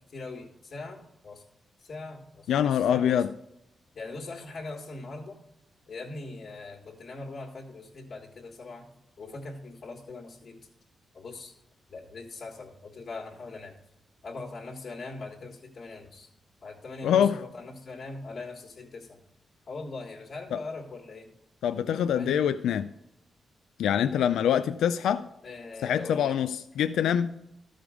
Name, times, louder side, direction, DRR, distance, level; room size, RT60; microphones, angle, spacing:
voice 1, 0.1-1.4 1.8-3.2 3.9-5.4 5.9-8.9 9.2-10.6 11.1-11.5 11.9-13.8 14.2-16.3 16.6-19.2 19.7-21.3 21.9-22.4 25.4-26.4, left 3 dB, 60° left, 1.8 m, -41 dB
voice 2, 2.5-3.3 17.0-17.4 20.5-20.6 21.6-22.9 23.8-25.3 25.8-27.4, left 9 dB, 90° left, 0.3 m, -25 dB
13.0 x 5.1 x 5.0 m
cardioid pair, 75°, 0 cm